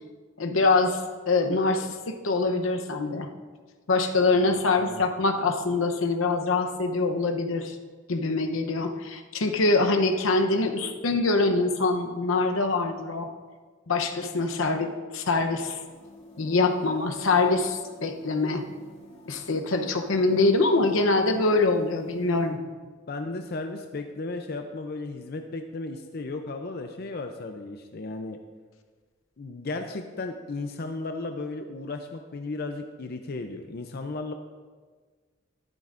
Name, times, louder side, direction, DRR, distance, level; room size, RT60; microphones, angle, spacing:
voice 1, 0.4-1.0 1.3-3.3 3.9-7.8 8.1-13.3 13.9-15.8 16.4-18.6 19.3-22.6, left 3 dB, 75° left, 5 dB, 0.8 m, -24 dB
voice 2, 4.3-5.0 23.1-28.4 29.4-34.3, left 3 dB, 50° left, 5 dB, 0.5 m, -35 dB
sound 1, 15.5-22.5, left 1 dB, 35° left, 2.5 m, -49 dB
13.0 x 11.5 x 2.5 m, 1.5 s
head